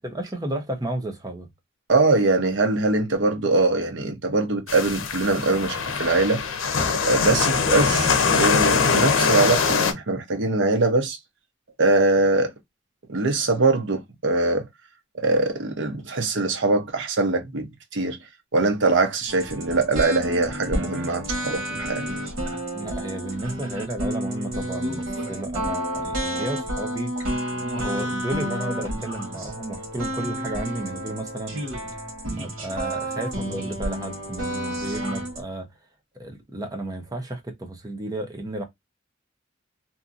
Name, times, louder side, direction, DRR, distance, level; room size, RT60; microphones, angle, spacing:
voice 1, 0.0-1.5 22.7-27.1 27.7-31.6 32.2-35.7 36.2-38.6, right 1 dB, 20° right, 0.7 m, -32 dB
voice 2, 1.9-6.4 6.9-11.2 11.8-12.5 13.1-14.7 15.2-18.2 18.5-22.0, right 3 dB, 65° right, 0.8 m, -22 dB
sound 1, 4.7-9.9, left 5 dB, 80° left, 0.6 m, -22 dB
sound 2, 19.3-35.4, equal, 85° right, 1.3 m, -30 dB
2.7 x 2.6 x 2.4 m
head